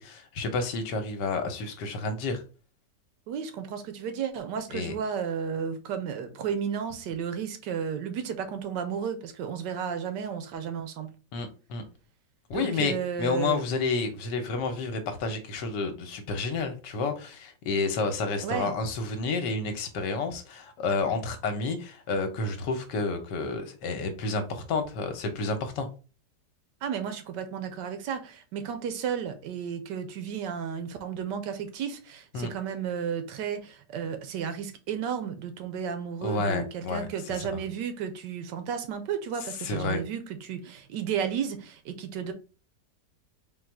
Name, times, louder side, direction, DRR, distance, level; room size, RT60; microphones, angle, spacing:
voice 1, 0.0-2.4 4.7-4.9 11.3-11.8 12.5-25.9 32.3-32.5 36.2-37.4 39.6-40.0, left 3 dB, 80° left, 1.4 m, -30 dB
voice 2, 3.3-11.1 12.5-13.6 18.4-18.7 26.8-42.3, right 7 dB, 85° right, 1.3 m, -33 dB
3.9 x 2.3 x 4.5 m
omnidirectional pair, 1.9 m